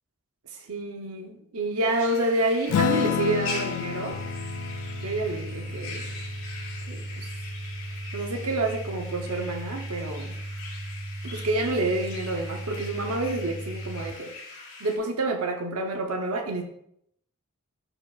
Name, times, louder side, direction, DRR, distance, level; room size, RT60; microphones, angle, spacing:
voice 1, 0.7-4.2 5.0-6.2 6.9-7.3 8.1-10.3 11.2-14.3 14.8-16.6, right 2 dB, 75° right, 2 dB, 0.8 m, -28 dB
sound 1, 1.9-15.0, left 3 dB, 60° left, 1.9 m, -42 dB
Acoustic guitar / Strum, 2.7-7.5, left 8 dB, 85° left, 0.4 m, -31 dB
sound 2, 4.1-14.1, right 1 dB, 15° right, 0.3 m, -37 dB
11.5 x 4.9 x 2.4 m, 0.73 s
head